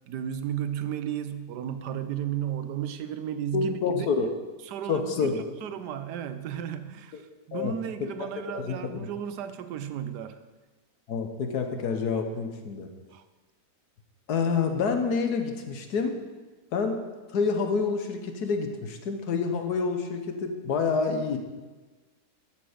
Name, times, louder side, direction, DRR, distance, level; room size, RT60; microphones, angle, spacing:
voice 1, 0.1-4.1 4.6-10.4 13.1-13.2, right 10 dB, 80° right, 11 dB, 1.3 m, -34 dB
voice 2, 3.5-4.3 4.9-5.4 7.5-7.7 8.5-9.1 11.1-12.9 14.3-16.2 16.7-17.0 17.3-21.4, left 5 dB, 75° left, 6 dB, 1.6 m, -28 dB
12.0 x 7.2 x 5.1 m, 1.3 s
omnidirectional pair, 1.8 m